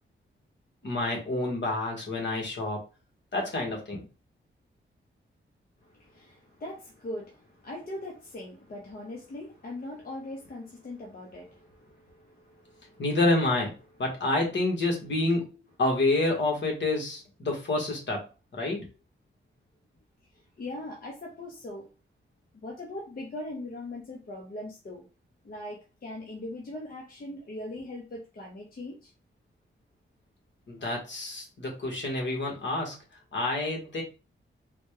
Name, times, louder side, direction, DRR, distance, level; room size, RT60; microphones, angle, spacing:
voice 1, 0.8-2.9 3.3-4.0 13.0-13.7 14.0-15.5 15.8-18.2 18.5-18.9 30.7-33.0 33.3-34.0, left 2 dB, 60° left, 1.5 m, -28 dB
voice 2, 5.8-13.0 20.6-21.9 22.5-25.1 25.4-29.1, left 1 dB, 45° left, 0.9 m, -40 dB
4.0 x 2.3 x 3.3 m
wide cardioid pair, 100°, 21 cm